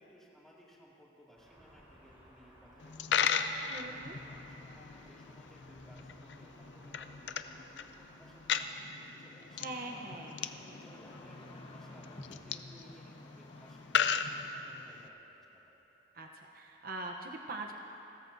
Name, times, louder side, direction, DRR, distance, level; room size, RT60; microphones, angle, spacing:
voice 1, 0.0-3.3 3.7-9.7 10.2-15.6, equal, 5° left, -6 dB, 2.3 m, -60 dB
sound 1, 1.4-8.5, equal, 15° right, 3.9 m, -60 dB
Coin (dropping), 2.8-15.1, left 7 dB, 75° left, 0.5 m, -37 dB
voice 2, 3.7-4.2 9.6-10.4 16.1-17.7, right 2 dB, 55° right, 1 dB, 0.8 m, -42 dB
sound 2, 9.5-14.5, left 1 dB, 30° left, 1.2 m, -53 dB
29.0 x 14.0 x 2.7 m, 3.0 s
head